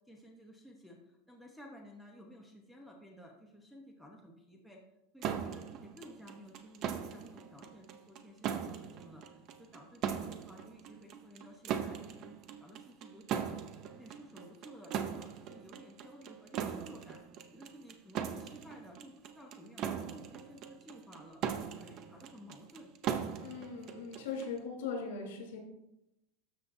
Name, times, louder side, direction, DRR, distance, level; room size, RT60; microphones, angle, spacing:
voice 1, 0.1-4.8 5.1-12.3 12.6-13.6 13.9-17.2 17.5-21.4 21.7-22.9, equal, ahead, -2 dB, 0.9 m, -54 dB
sound 1, 5.2-24.6, right 8 dB, 35° right, 0.6 m, -40 dB
voice 2, 23.4-25.6, left 5 dB, 70° left, 1 dB, 3.6 m, -40 dB
12.5 x 7.0 x 2.7 m, 0.89 s
supercardioid pair, 165°, 0 cm